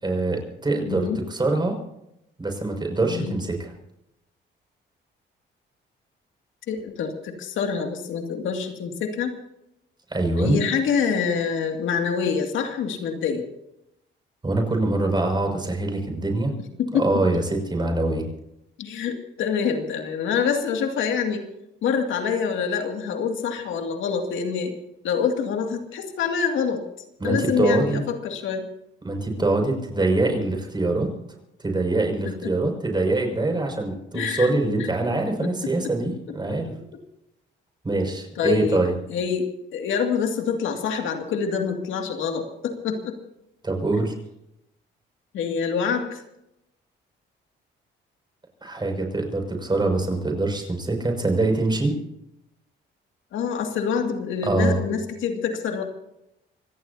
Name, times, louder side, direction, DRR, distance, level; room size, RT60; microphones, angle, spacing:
voice 1, 0.0-1.8 2.4-3.7 10.1-10.6 14.4-16.5 16.9-18.3 27.2-28.0 29.0-31.1 31.6-36.7 37.8-38.9 43.6-44.1 48.6-52.0 54.4-54.8, right 2 dB, 20° right, 3 dB, 6.1 m, -24 dB
voice 2, 0.9-1.2 3.1-3.4 6.7-9.3 10.4-13.4 16.8-17.1 18.8-21.4 21.8-24.7 25.0-26.8 27.2-28.6 32.3-32.5 34.1-34.5 34.8-34.9 35.4-35.5 38.4-38.8 39.1-43.1 45.3-46.2 53.3-55.8, left 6 dB, 80° left, 4 dB, 2.4 m, -26 dB
26.0 x 17.5 x 2.8 m, 0.83 s
cardioid pair, 90°, 20 cm